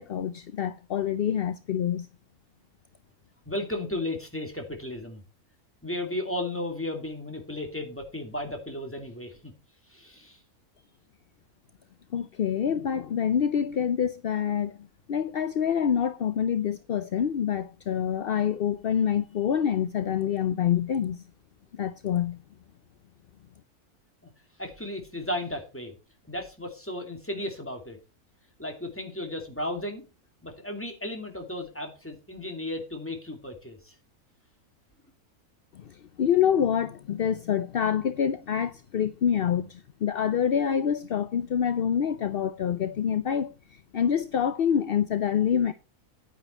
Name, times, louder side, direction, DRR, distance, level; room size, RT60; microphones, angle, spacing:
voice 1, 0.0-2.1 12.1-14.8 15.1-21.2 21.8-22.4 35.7-43.5 43.9-45.7, left 8 dB, 55° left, 0.6 m, -26 dB
voice 2, 3.5-5.2 5.8-9.5 9.9-10.4 24.6-25.9 26.3-28.0 28.6-30.1 30.4-33.9, left 1 dB, 10° left, 2.5 m, -34 dB
10.0 x 9.4 x 4.4 m
omnidirectional pair, 1.6 m